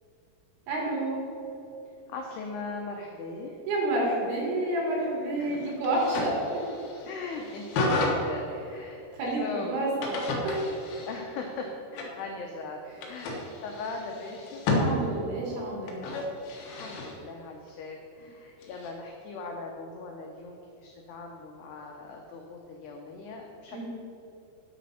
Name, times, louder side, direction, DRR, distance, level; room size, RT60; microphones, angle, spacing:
voice 1, 0.7-1.2 3.7-6.4 9.1-9.4 9.7-9.9 10.5-10.6 14.7-16.1 23.7-23.8, right 1 dB, 75° right, -4 dB, 5.2 m, -29 dB
voice 2, 1.9-3.5 5.4-5.7 7.0-9.1 9.4-9.9 11.1-12.8 13.1-14.7 16.7-23.8, left 3 dB, 85° left, 1 dB, 2.3 m, -39 dB
sound 1, 5.8-8.2 10.0-11.4 12.0-12.2 13.0-14.9 15.9-17.1 18.6-18.9, left 2 dB, 65° left, 2.6 m, -32 dB
9.3 x 9.3 x 5.6 m, 2.9 s
omnidirectional pair, 5.8 m